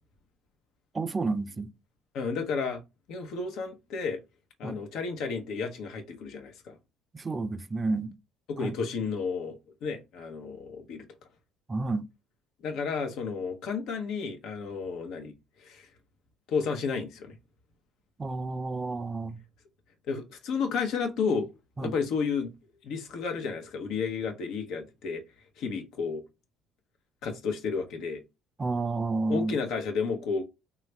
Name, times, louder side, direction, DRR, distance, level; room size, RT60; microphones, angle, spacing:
voice 1, 0.9-1.7 4.6-4.8 7.1-8.2 8.6-8.7 11.7-12.1 18.2-19.4 21.8-22.0 28.6-29.6, right 3 dB, 25° right, 0.3 m, -30 dB
voice 2, 2.1-2.8 3.1-4.2 4.6-6.8 8.5-11.1 12.6-15.3 15.6-15.9 16.5-17.4 20.1-21.5 21.8-22.5 22.8-25.2 25.6-26.2 27.2-28.2 29.3-30.4, left 5 dB, 70° left, 0.7 m, -32 dB
3.3 x 2.4 x 3.1 m
supercardioid pair, 70°, 0 cm